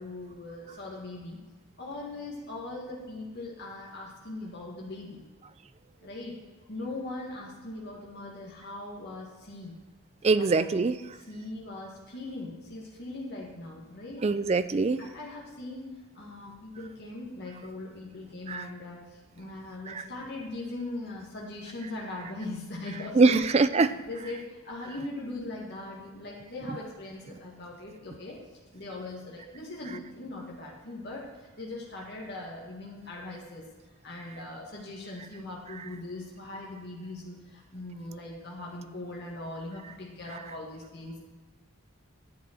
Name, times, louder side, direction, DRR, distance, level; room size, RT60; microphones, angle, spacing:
voice 1, 0.0-1.4 1.8-5.2 6.0-6.4 6.7-9.7 10.3-10.7 11.2-14.4 15.0-23.4 23.9-28.4 28.7-33.6 34.0-41.2, left 2 dB, 50° left, -3 dB, 1.9 m, -40 dB
voice 2, 10.2-11.0 14.2-15.0 18.5-18.6 19.9-20.0 23.1-23.9 26.6-26.8 35.8-35.9 40.3-40.4, right 3 dB, 30° right, 13 dB, 0.3 m, -23 dB
10.5 x 7.4 x 4.3 m, 1.3 s
head